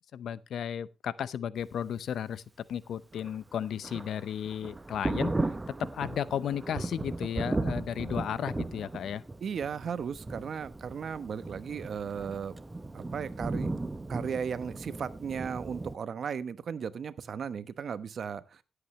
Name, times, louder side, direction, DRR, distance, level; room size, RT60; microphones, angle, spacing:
voice 1, 0.1-2.4 2.7-5.3 5.8-9.2, left 9 dB, 75° left, 0.7 m, -34 dB
Thunder, 3.1-16.0, right 2 dB, 20° right, 0.9 m, -36 dB
voice 2, 9.4-12.5 12.9-13.7 14.1-18.6, right 7 dB, 60° right, 1.0 m, -36 dB
17.5 x 8.2 x 3.1 m
cardioid pair, 80°, 0 cm